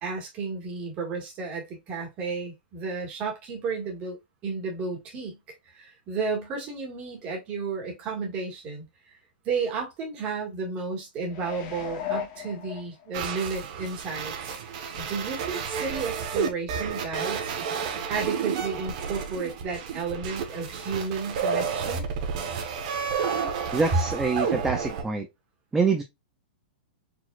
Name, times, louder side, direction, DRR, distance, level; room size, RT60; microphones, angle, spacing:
voice 1, 0.0-4.2 4.4-5.4 5.7-8.9 9.5-14.6 15.0-17.5 18.1-22.1 23.9-24.0, right 4 dB, 20° right, 1.7 m, -32 dB
sound 1, 11.3-13.4 13.9-14.0, left 10 dB, 30° left, 1.0 m, -36 dB
sound 2, 13.1-25.0, right 6 dB, 40° right, 1.1 m, -31 dB
voice 2, 23.7-25.3 25.7-26.0, right 4 dB, 5° right, 0.4 m, -25 dB
4.7 x 4.0 x 2.4 m
supercardioid pair, 175°, 6 cm